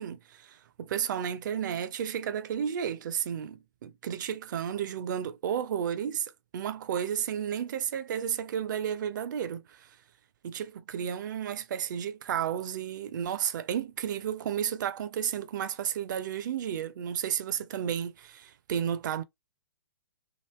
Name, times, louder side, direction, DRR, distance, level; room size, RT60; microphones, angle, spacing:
voice 1, 0.0-9.9 10.4-19.2, right 9 dB, 50° right, 0.4 m, -32 dB
2.9 x 2.7 x 3.0 m
figure-of-eight pair, 120°, 13 cm